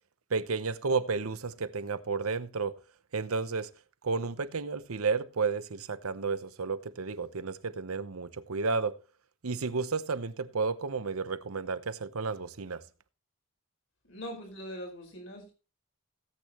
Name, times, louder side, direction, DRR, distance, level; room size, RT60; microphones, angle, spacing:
voice 1, 0.3-2.8 3.1-3.7 4.0-9.0 9.4-12.8, right 4 dB, 90° right, 0.8 m, -32 dB
voice 2, 14.1-15.5, equal, 65° left, 4.8 m, -41 dB
17.0 x 8.4 x 3.0 m
head